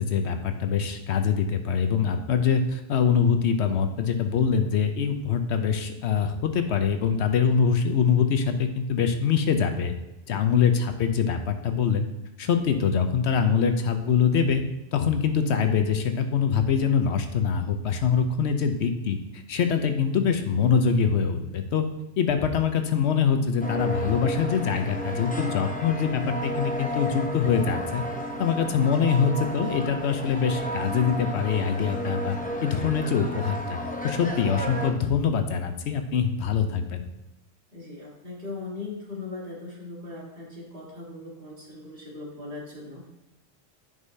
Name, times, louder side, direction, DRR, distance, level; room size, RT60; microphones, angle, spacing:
voice 1, 0.0-9.9 10.3-12.1 12.4-14.6 14.9-21.8 22.2-28.0 28.4-37.0, left 6 dB, 85° left, 7 dB, 1.0 m, -24 dB
voice 2, 10.3-10.6 37.7-43.1, left 3 dB, 60° right, -3 dB, 1.9 m, -39 dB
sound 1, 23.6-34.9, equal, 10° left, 0.6 m, -32 dB
9.7 x 5.3 x 2.7 m, 0.94 s
omnidirectional pair, 1.1 m